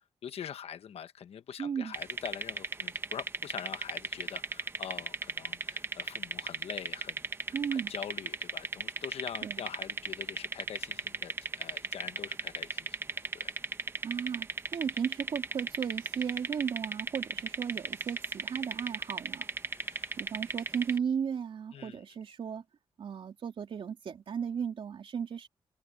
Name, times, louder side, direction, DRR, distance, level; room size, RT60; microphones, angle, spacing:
voice 1, 0.2-7.3 7.7-13.0 13.3-13.6 19.7-20.2 21.7-22.0, left 8 dB, 85° left, 1.1 m, -44 dB
voice 2, 1.6-1.9 7.5-7.9 9.4-9.6 14.0-19.5 20.2-22.6 23.0-25.5, right 7 dB, 60° right, 3.3 m, -35 dB
sound 1, 1.9-21.0, right 3 dB, 25° right, 1.1 m, -36 dB
wide cardioid pair, 175°, 10 cm